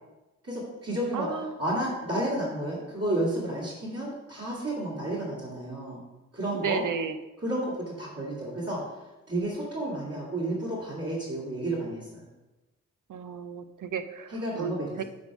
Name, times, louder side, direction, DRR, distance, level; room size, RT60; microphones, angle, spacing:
voice 1, 0.4-6.0 6.3-6.8 7.4-12.3 14.3-15.0, right 1 dB, 50° right, -8 dB, 2.8 m, -31 dB
voice 2, 1.1-1.5 6.5-7.2 13.1-15.0, right 6 dB, 75° right, 10 dB, 0.7 m, -33 dB
8.6 x 3.6 x 6.1 m, 1.1 s
cardioid pair, 45°, 32 cm